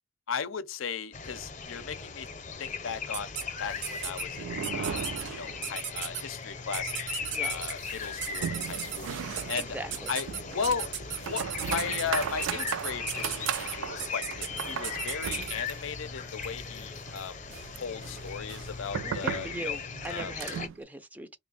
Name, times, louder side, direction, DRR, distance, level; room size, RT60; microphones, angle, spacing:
voice 1, 0.3-2.3 2.6-5.0 5.3-7.0 7.4-9.1 9.5-9.8 10.1-10.3 10.5-17.4 17.7-19.8 20.1-20.3, left 6 dB, 90° left, 0.5 m, -36 dB
sound 1, 1.1-20.7, left 5 dB, 40° left, 0.6 m, -38 dB
sound 2, 3.1-3.4 3.8-4.2 4.6-5.2 5.6-6.2 6.7-7.7 8.2-9.0 9.4-9.6 9.9-15.6, right 9 dB, 60° right, 0.7 m, -35 dB
sound 3, 3.6-6.0 6.2-6.3 6.6-6.7 7.2-20.8, right 7 dB, 80° right, 0.3 m, -38 dB
voice 2, 7.4-7.7 9.5-10.1 15.4-15.6 17.5-17.7 19.0-21.4, right 1 dB, 10° right, 0.3 m, -41 dB
3.3 x 2.1 x 3.9 m
head